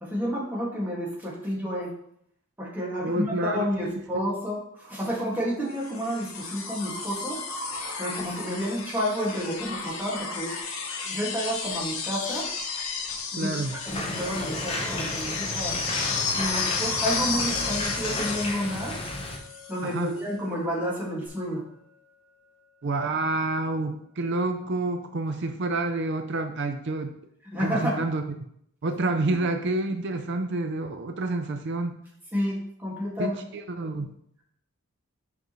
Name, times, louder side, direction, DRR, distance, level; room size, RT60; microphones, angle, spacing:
voice 1, 0.0-1.9 2.6-7.4 8.0-10.5 11.0-12.5 13.3-13.5 13.9-15.8 16.3-19.0 19.7-21.6 27.5-28.0 32.3-33.4, equal, 10° right, -5 dB, 1.9 m, -30 dB
voice 2, 3.0-3.7 4.1-4.2 13.3-13.8 19.8-20.1 22.8-27.1 27.6-28.2 28.8-32.0 33.2-34.1, right 2 dB, 55° right, 7 dB, 0.5 m, -28 dB
sound 1, 5.8-19.8 21.3-21.4, left 5 dB, 75° left, 1.1 m, -32 dB
sound 2, 13.9-19.4, left 1 dB, 25° left, 0.9 m, -33 dB
sound 3, 17.5-23.4, left 5 dB, 75° right, 2.7 m, -47 dB
7.8 x 5.2 x 3.1 m, 0.71 s
head